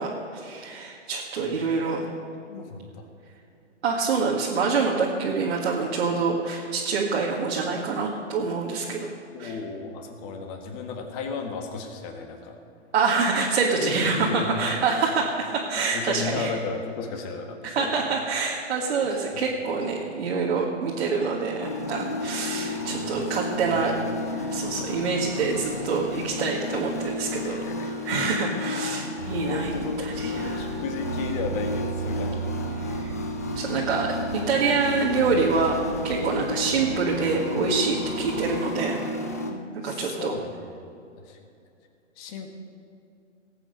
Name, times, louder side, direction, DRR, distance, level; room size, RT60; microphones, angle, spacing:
voice 1, 0.0-2.1 3.8-9.1 9.4-9.5 12.9-16.5 17.6-23.9 24.3-29.7 30.0-30.7 32.8-33.1 33.5-39.0 39.8-40.4, right 4 dB, 60° right, -3 dB, 1.9 m, -26 dB
voice 2, 1.4-1.8 2.5-3.1 9.3-12.6 13.8-14.7 15.9-18.0 19.3-19.4 20.0-20.2 22.8-23.3 23.7-24.1 27.4-28.2 28.4-28.5 29.4-33.0 39.8-40.5 41.2-41.4 42.2-42.5, left 4 dB, 30° left, 4 dB, 1.7 m, -35 dB
sound 1, 21.6-39.5, left 2 dB, 15° left, 0.3 m, -32 dB
sound 2, 29.2-38.6, right 7 dB, 90° right, 0.9 m, -37 dB
19.0 x 8.4 x 5.3 m, 2.5 s
hypercardioid pair, 135°, 37 cm